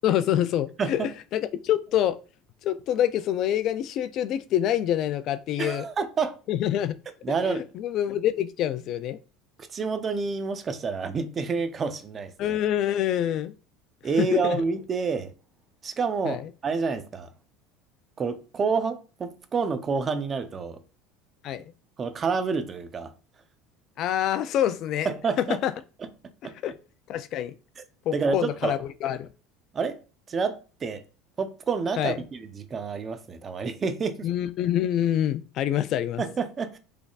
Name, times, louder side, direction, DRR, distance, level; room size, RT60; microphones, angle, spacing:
voice 1, 0.0-2.2 2.6-5.9 6.5-7.0 7.5-9.2 12.4-13.5 14.2-14.6 16.3-16.5 21.4-21.6 24.0-25.1 25.4-25.7 26.6-26.7 27.1-27.5 28.1-29.3 32.0-32.2 34.2-36.2, left 11 dB, 55° left, 0.3 m, -26 dB
voice 2, 5.6-6.4 7.2-7.6 9.7-12.6 14.0-15.3 15.8-17.3 18.2-20.8 22.0-23.1 25.0-25.6 26.4-26.5 27.8-27.9 28.1-28.8 29.7-30.0 30.3-31.0 31.4-34.3 36.2-36.8, right 5 dB, 30° right, 0.7 m, -28 dB
3.9 x 3.3 x 2.4 m
supercardioid pair, 95°, 0 cm